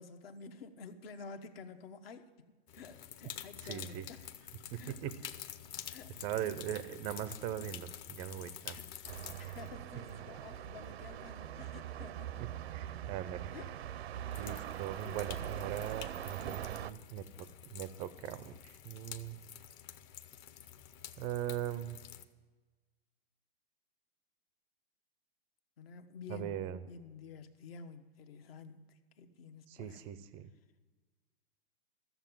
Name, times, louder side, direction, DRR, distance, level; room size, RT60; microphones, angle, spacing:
voice 1, 0.0-2.5 2.7-4.3 4.7-5.0 5.9-6.5 8.6-12.4 13.5-13.8 14.3-15.2 25.8-30.0, left 5 dB, 70° left, 8 dB, 1.1 m, -51 dB
sound 1, 2.7-12.0 12.8-12.9 14.3-22.2, left 10 dB, 30° left, 0.6 m, -49 dB
voice 2, 3.6-4.0 4.7-5.1 6.2-8.8 12.7-13.5 14.4-17.5 17.7-19.4 21.2-22.0 26.3-26.8 29.7-30.5, right 11 dB, 20° right, 14 dB, 0.3 m, -40 dB
sound 2, 9.0-16.9, right 11 dB, 85° right, 0.6 m, -42 dB
13.5 x 7.0 x 7.4 m, 1.3 s
hypercardioid pair, 140°, 31 cm